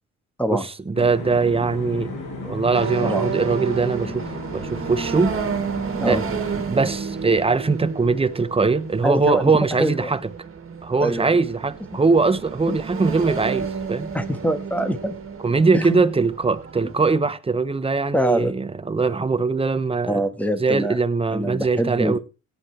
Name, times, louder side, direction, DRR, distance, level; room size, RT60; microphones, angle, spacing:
sound 1, 0.9-7.2, left 3 dB, 85° left, 6.1 m, -35 dB
voice 1, 0.9-2.1 2.4-5.4 6.1-6.2 6.6-10.2 10.8-14.1 15.4-20.2 20.6-22.2, right 4 dB, 20° right, 1.0 m, -21 dB
sound 2, 2.7-17.1, right 6 dB, 45° right, 2.3 m, -31 dB
voice 2, 9.0-9.5 9.8-10.1 11.0-11.3 12.7-12.8 14.1-15.2 15.7-16.0 18.1-18.5 20.1-21.0 21.3-22.2, right 1 dB, 5° left, 1.5 m, -24 dB
17.5 x 9.9 x 3.3 m
cardioid pair, 90°, 30 cm